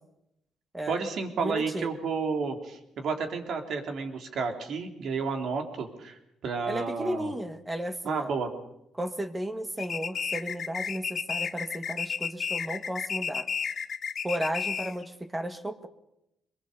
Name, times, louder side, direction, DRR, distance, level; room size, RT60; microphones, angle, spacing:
voice 1, 0.9-7.3 8.0-8.5, right 5 dB, 65° right, 5 dB, 3.5 m, -31 dB
voice 2, 1.4-1.9 6.7-8.3 9.0-13.5 14.2-15.9, right 1 dB, 15° right, 8 dB, 1.8 m, -34 dB
sound 1, 9.8-15.1, left 6 dB, 50° left, 1.1 m, -32 dB
23.5 x 22.0 x 6.8 m, 0.81 s
cardioid pair, 90°, 0 cm